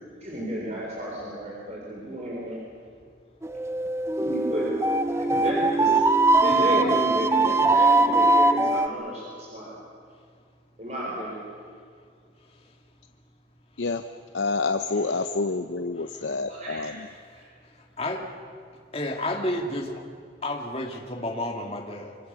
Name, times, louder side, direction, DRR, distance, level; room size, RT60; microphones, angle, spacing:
voice 1, 0.2-2.6 4.2-4.7 5.2-6.0 6.4-9.7 10.8-11.4 16.5-16.9 17.3-17.4, right 1 dB, 40° right, -4 dB, 4.2 m, -32 dB
sound 1, 3.4-8.9, right 2 dB, 15° right, 0.7 m, -21 dB
voice 2, 14.3-17.1, left 3 dB, 80° left, 8 dB, 0.8 m, -28 dB
voice 3, 18.0-18.3 18.9-20.0 20.4-22.2, left 1 dB, 30° left, 2 dB, 2.4 m, -31 dB
25.5 x 25.0 x 6.9 m, 2.2 s
head